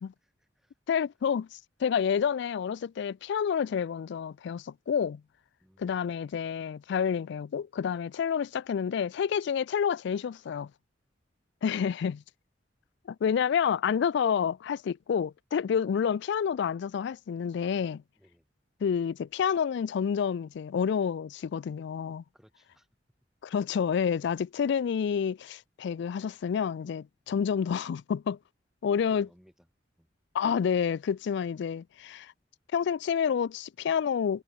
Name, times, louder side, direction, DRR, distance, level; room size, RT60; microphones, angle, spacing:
voice 1, 0.2-0.7 5.6-6.1 11.6-12.1 18.2-18.5 22.3-22.9 27.3-27.5 28.9-29.7 30.0-30.1, equal, ahead, 2.5 m, -61 dB
voice 2, 0.9-5.2 5.8-10.7 11.6-12.2 13.1-18.0 18.8-22.2 23.4-28.4 28.8-29.3 30.3-32.3 32.7-34.4, left 7 dB, 65° left, 0.3 m, -29 dB
head